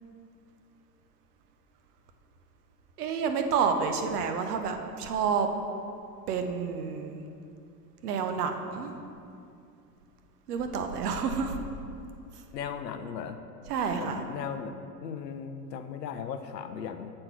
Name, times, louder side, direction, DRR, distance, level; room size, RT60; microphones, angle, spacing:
voice 1, 3.0-5.5 6.3-7.2 8.0-8.9 10.5-11.6 13.7-14.2, right 6 dB, 70° right, 6 dB, 0.8 m, -29 dB
voice 2, 12.5-13.4 13.9-17.1, left 7 dB, 85° left, 8 dB, 0.6 m, -37 dB
7.6 x 4.4 x 4.5 m, 2.5 s
hypercardioid pair, 90°, 48 cm